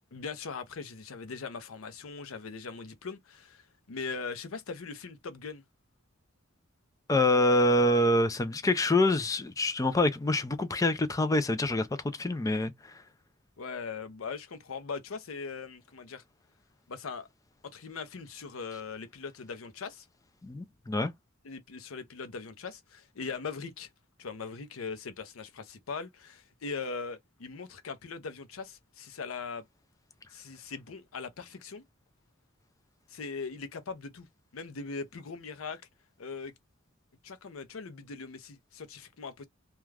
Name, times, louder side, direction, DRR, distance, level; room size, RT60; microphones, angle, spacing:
voice 1, 0.1-5.6 13.6-16.2 16.9-17.3 17.6-20.1 21.4-23.9 24.2-29.6 30.3-31.8 33.1-34.3 34.5-35.8 36.2-36.5 37.2-39.5, left 4 dB, 90° left, 0.6 m, -40 dB
voice 2, 7.1-11.9 12.2-12.7 20.4-21.1, left 1 dB, 15° left, 0.3 m, -25 dB
2.3 x 2.2 x 3.2 m
head